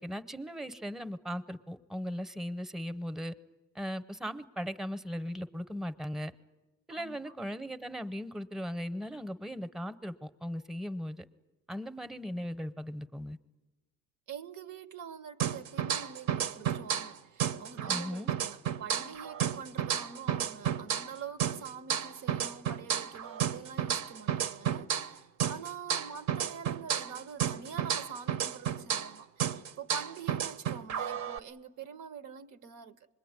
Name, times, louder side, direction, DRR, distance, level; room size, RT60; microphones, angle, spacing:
voice 1, 0.0-3.3 3.7-6.3 6.9-11.2 11.7-13.4 17.9-18.3, equal, ahead, 0.7 m, -38 dB
voice 2, 6.9-7.3 14.3-33.1, right 7 dB, 90° right, 0.9 m, -45 dB
sound 1, 15.4-17.1 17.4-21.1 21.4-25.1 25.4-29.1 29.4-31.4, right 9 dB, 65° right, 0.7 m, -32 dB
25.0 x 21.0 x 9.6 m
cardioid pair, 90°, 30 cm